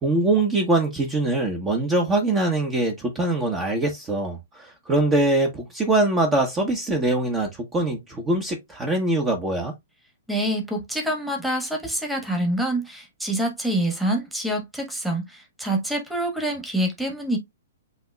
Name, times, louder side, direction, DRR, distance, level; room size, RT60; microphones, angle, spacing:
voice 1, 0.0-9.7, right 2 dB, 20° right, 1.1 m, -23 dB
voice 2, 10.3-15.2 15.6-17.4, right 1 dB, ahead, 1.4 m, -26 dB
7.8 x 2.9 x 2.3 m
figure-of-eight pair, 115°, 0 cm